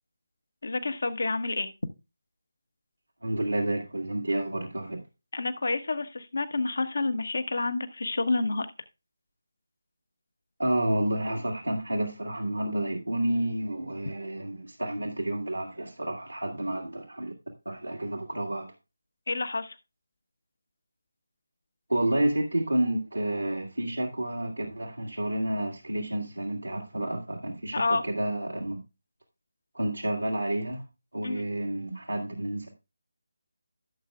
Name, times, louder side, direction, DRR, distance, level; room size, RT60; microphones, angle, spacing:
voice 1, 0.6-1.7 5.3-8.7 19.3-19.7 27.7-28.0 31.2-31.5, left 3 dB, 60° left, 1.2 m, -29 dB
voice 2, 3.2-5.0 10.6-17.3 17.7-18.7 21.9-28.8 29.7-30.8 31.1-32.7, right 1 dB, 85° right, 2.0 m, -30 dB
15.5 x 7.4 x 2.4 m
figure-of-eight pair, 155°, 0 cm